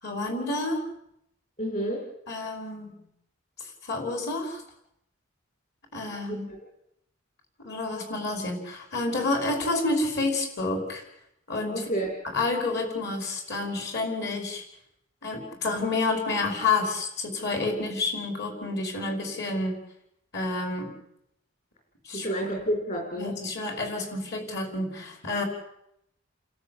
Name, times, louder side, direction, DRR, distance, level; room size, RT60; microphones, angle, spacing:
voice 1, 0.0-0.8 2.3-3.0 3.6-4.6 5.9-6.5 7.6-11.0 11.5-11.9 12.2-14.6 15.2-19.8 20.3-21.0 22.0-22.3 23.2-25.4, left 3 dB, 60° left, 4 dB, 5.6 m, -29 dB
voice 2, 1.6-2.0 11.7-12.1 22.1-23.3, right 1 dB, 45° left, 1 dB, 4.8 m, -29 dB
29.5 x 13.0 x 8.8 m, 0.79 s
head